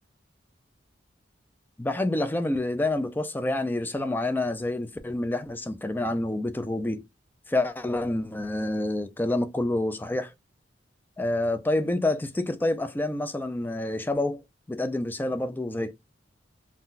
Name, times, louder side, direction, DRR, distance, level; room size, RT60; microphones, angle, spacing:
voice 1, 1.8-7.0 7.5-10.3 11.2-14.4 14.7-15.9, left 2 dB, 10° left, 0.3 m, -28 dB
3.7 x 2.2 x 2.5 m
head